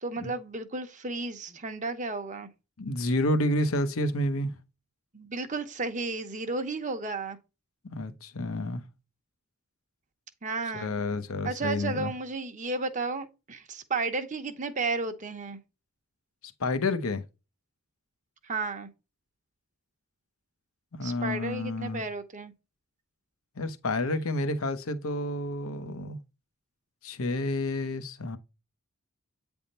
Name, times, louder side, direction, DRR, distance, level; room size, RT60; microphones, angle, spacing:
voice 1, 0.0-2.5 5.1-7.4 10.4-10.9 11.4-15.6 18.4-18.9 21.0-22.5, right 3 dB, 35° right, 0.9 m, -33 dB
voice 2, 2.8-4.5 7.9-8.8 10.7-12.1 16.6-17.2 20.9-22.0 23.6-26.2 27.0-28.4, left 1 dB, 70° left, 0.9 m, -29 dB
8.8 x 3.5 x 4.2 m
head